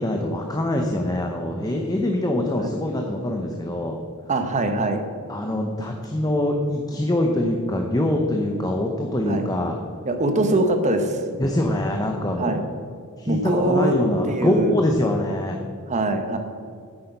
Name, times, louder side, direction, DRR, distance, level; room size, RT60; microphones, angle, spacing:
voice 1, 0.0-4.0 5.3-9.8 11.4-12.6 13.2-15.6, left 1 dB, 15° left, 2 dB, 0.7 m, -24 dB
voice 2, 4.3-5.0 9.3-9.4 10.0-11.2 12.4-12.6 13.3-14.0 14.3-14.8 15.9-16.4, right 2 dB, 35° right, 6 dB, 1.0 m, -22 dB
8.9 x 7.8 x 5.4 m, 2.2 s
head